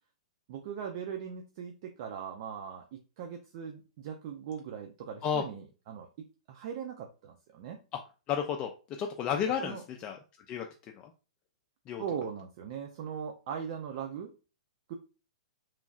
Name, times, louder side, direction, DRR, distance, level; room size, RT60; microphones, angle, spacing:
voice 1, 0.5-7.8 9.6-9.8 12.0-14.3 14.9-15.0, right 7 dB, 50° right, 4 dB, 0.4 m, -40 dB
voice 2, 8.3-8.7 9.0-10.2 10.5-11.1 11.9-12.0, left 8 dB, 30° left, 3 dB, 0.3 m, -32 dB
3.1 x 2.6 x 2.3 m, 0.34 s
hypercardioid pair, 120°, 3 cm